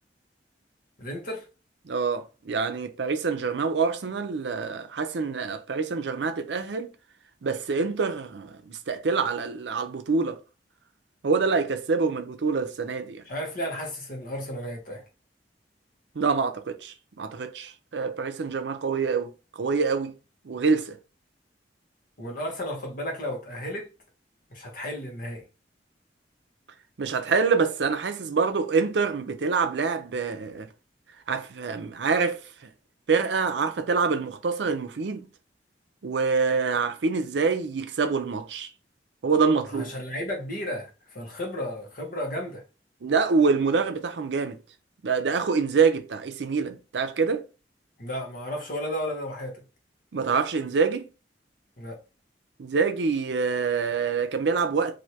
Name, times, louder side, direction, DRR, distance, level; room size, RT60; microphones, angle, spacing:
voice 1, 1.0-1.4 13.3-15.0 22.2-23.9 24.5-25.4 39.7-42.6 48.0-49.6 51.8-52.0, equal, 55° left, 1.2 m, -33 dB
voice 2, 1.9-6.9 7.4-10.4 11.2-13.2 16.2-20.1 20.4-21.0 27.0-30.7 31.3-32.7 33.1-35.3 36.0-38.7 39.2-39.9 43.0-44.6 45.0-47.4 50.1-51.1 52.6-55.0, right 5 dB, 75° right, 0.5 m, -26 dB
3.2 x 2.6 x 2.8 m
head